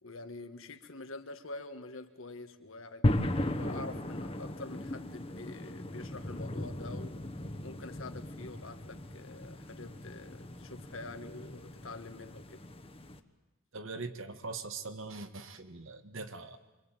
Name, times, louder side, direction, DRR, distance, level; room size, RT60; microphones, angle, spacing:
voice 1, 0.0-7.2 7.6-12.6, left 2 dB, 70° left, 8 dB, 1.7 m, -46 dB
sound 1, 3.0-13.2, left 1 dB, 30° left, 1.2 m, -37 dB
voice 2, 13.7-16.6, right 3 dB, 70° right, 8 dB, 1.8 m, -42 dB
26.0 x 23.5 x 9.1 m, 1.1 s
head